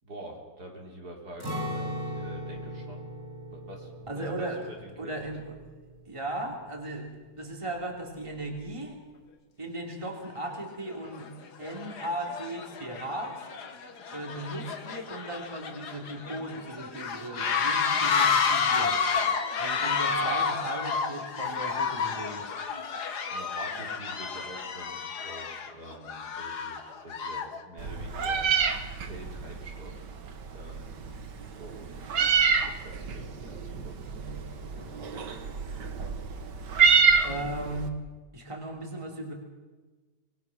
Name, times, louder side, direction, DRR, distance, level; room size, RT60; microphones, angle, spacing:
voice 1, 0.0-3.1 3.5-5.3 20.2-20.4 23.3-28.5 29.0-30.1 30.5-31.0 31.6-34.0, right 1 dB, 70° right, -1 dB, 4.2 m, -46 dB
Acoustic guitar, 1.4-7.3 7.6-7.8 8.3-8.7, equal, 45° right, 4.7 m, -39 dB
voice 2, 4.1-4.7 5.0-5.6 6.0-7.1 7.4-9.0 9.6-11.3 11.6-13.4 14.1-19.0 19.6-22.5 34.7-35.3 37.2-37.9 38.3-39.3, right 1 dB, 15° right, 1 dB, 3.1 m, -37 dB
sound 1, 10.2-10.3 11.0-11.3 11.6-27.6, left 5 dB, 70° left, 2.1 m, -30 dB
Meow, 27.8-37.9, right 6 dB, 90° right, 2.0 m, -27 dB
25.0 x 21.5 x 6.1 m, 1.3 s
omnidirectional pair, 1.8 m